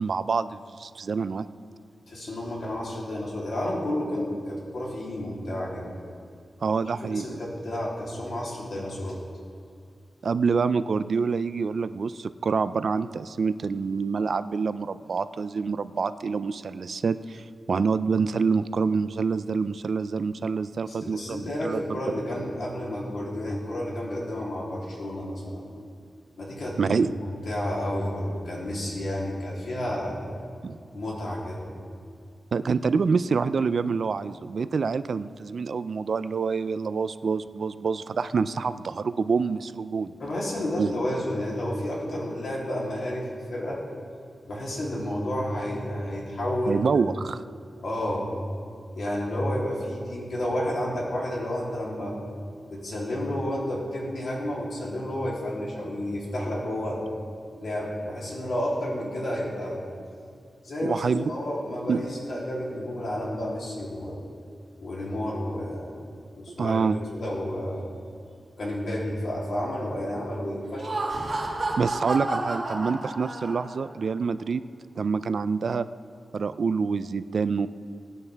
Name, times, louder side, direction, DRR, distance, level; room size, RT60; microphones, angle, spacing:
voice 1, 0.0-1.5 6.6-7.4 10.2-22.0 26.8-27.2 30.6-30.8 32.5-40.1 40.8-40.9 46.7-47.4 60.8-61.3 61.9-62.0 66.6-67.0 71.8-74.6 75.0-75.9 76.3-77.7, right 5 dB, 55° right, 13 dB, 0.3 m, -26 dB
voice 2, 2.1-5.9 7.0-9.2 20.9-25.7 26.4-26.9 27.2-30.2 30.9-31.7 40.2-43.8 44.5-46.9 47.8-48.3 48.9-52.1 52.7-57.0 57.5-59.8 60.6-64.2 64.8-66.0 66.3-67.9 68.6-70.9, left 1 dB, 65° left, -4 dB, 3.1 m, -31 dB
Laughter, 70.6-73.9, right 2 dB, 35° right, 1.9 m, -30 dB
22.0 x 9.3 x 3.4 m, 2.3 s
wide cardioid pair, 180°, 0 cm